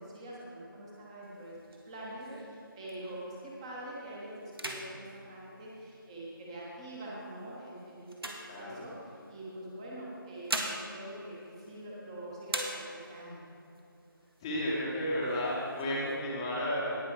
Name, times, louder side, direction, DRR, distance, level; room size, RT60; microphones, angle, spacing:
voice 1, 0.0-13.4, right 1 dB, 15° right, -5 dB, 1.2 m, -45 dB
sound 1, 1.2-3.4 3.9-4.1 4.5-6.4 7.1-9.2 10.1-12.1 12.4-13.3 13.8-13.9 14.1-14.8 15.3-16.2, right 1 dB, 85° right, 1.7 m, -41 dB
voice 2, 14.4-17.0, equal, 10° left, -6 dB, 1.1 m, -32 dB
18.5 x 6.1 x 4.7 m, 2.7 s
figure-of-eight pair, 165°, 12 cm